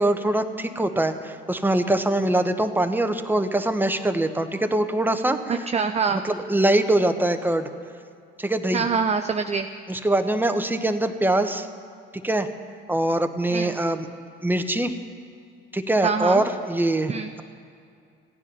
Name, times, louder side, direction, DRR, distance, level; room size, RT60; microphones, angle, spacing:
voice 1, 0.0-5.4 6.2-7.7 8.4-8.9 9.9-11.7 12.2-12.5 12.9-14.1 14.4-15.0 15.7-17.1, right 1 dB, 5° right, 7 dB, 1.0 m, -23 dB
voice 2, 5.5-6.2 8.7-9.7 13.5-13.8 16.0-16.4 17.1-17.3, right 5 dB, 20° right, 7 dB, 0.6 m, -24 dB
15.5 x 9.8 x 5.6 m, 2.3 s
hypercardioid pair, 55°, 29 cm